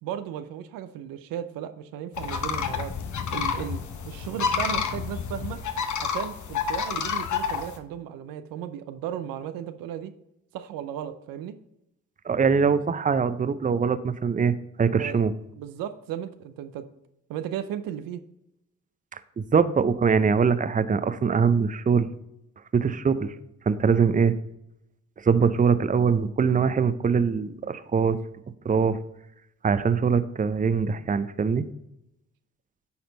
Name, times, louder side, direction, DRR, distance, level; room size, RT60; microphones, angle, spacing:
voice 1, 0.0-2.9 3.3-5.6 6.0-10.1 10.5-11.5 15.0-15.2 15.6-16.8 17.3-18.2, right 10 dB, 85° right, 10 dB, 0.6 m, -35 dB
sound 1, 2.1-7.8, left 6 dB, 60° left, 1.0 m, -29 dB
voice 2, 12.2-15.3 19.4-22.1 22.7-23.3 23.7-24.3 25.2-28.2 28.6-29.0 29.6-31.7, right 6 dB, 25° right, 12 dB, 0.6 m, -22 dB
9.4 x 4.3 x 3.9 m, 0.82 s
supercardioid pair, 50°, 34 cm